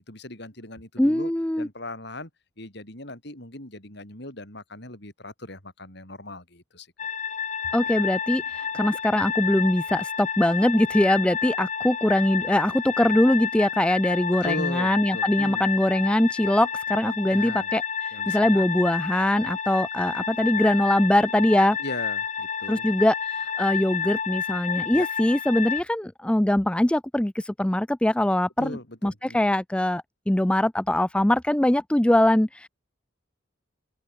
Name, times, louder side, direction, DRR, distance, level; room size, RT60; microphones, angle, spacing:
voice 1, 0.0-1.3 1.6-2.3 2.6-6.9 14.4-15.6 17.3-17.7 18.1-18.6 21.8-22.9 24.9-25.1 28.6-29.4, left 1 dB, 55° left, 6.4 m, -38 dB
voice 2, 1.0-1.7 7.7-21.8 22.7-32.7, left 1 dB, 5° left, 0.4 m, -22 dB
sound 1, 7.0-25.8, left 7 dB, 35° left, 1.7 m, -30 dB
open air
head